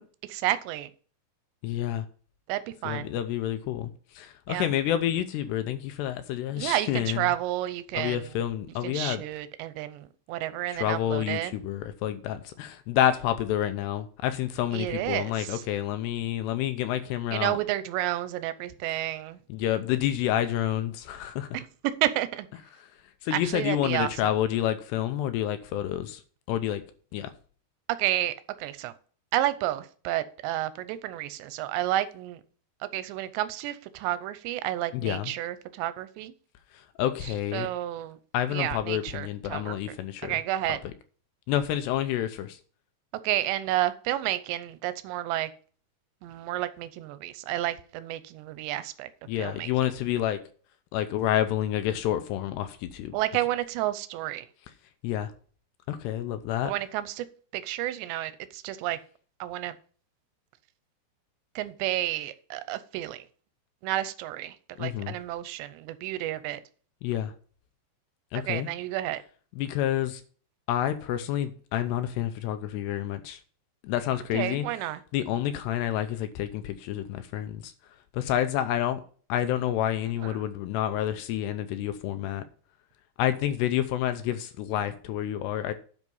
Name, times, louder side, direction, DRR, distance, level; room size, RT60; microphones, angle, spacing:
voice 1, 0.3-0.9 2.5-3.2 4.5-4.7 6.6-8.3 8.8-11.5 14.7-15.6 17.3-19.4 21.5-21.7 22.0-22.5 23.3-24.3 28.0-28.9 29.3-32.4 32.8-36.3 37.5-38.2 38.5-39.8 40.2-40.8 43.2-45.5 46.2-49.1 49.4-49.7 53.1-54.5 56.6-57.3 57.5-59.0 59.4-59.8 61.6-63.3 63.8-66.6 68.3-69.2 74.3-75.0 80.2-80.4, right 14 dB, 85° right, 2.9 m, -31 dB
voice 2, 1.6-2.1 2.8-7.3 7.9-9.2 10.7-17.6 19.5-21.5 23.2-26.2 26.5-26.8 27.1-27.3 34.9-35.3 37.0-37.7 38.3-40.3 40.7-40.8 41.5-42.6 49.3-50.4 50.9-53.2 55.0-55.3 55.9-56.7 64.8-65.2 67.0-67.3 68.3-68.7 69.6-70.2 70.7-73.4 73.8-74.7 75.1-77.7 78.1-79.0 79.3-82.4 83.2-85.7, left 11 dB, 80° left, 2.8 m, -29 dB
11.0 x 5.4 x 5.4 m
omnidirectional pair, 5.0 m